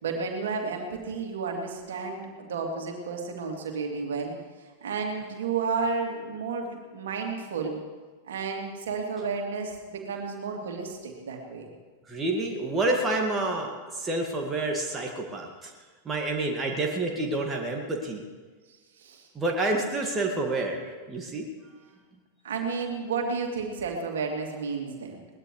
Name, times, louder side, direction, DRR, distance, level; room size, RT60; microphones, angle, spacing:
voice 1, 0.0-4.3 4.8-7.8 8.3-11.7 18.7-19.3 22.4-25.3, right 4 dB, 60° right, 1 dB, 2.9 m, -32 dB
voice 2, 12.1-15.7 16.1-18.2 19.3-21.5, right 2 dB, 20° right, 1 dB, 2.1 m, -28 dB
21.5 x 19.5 x 3.3 m, 1.4 s
figure-of-eight pair, 90°, 0 cm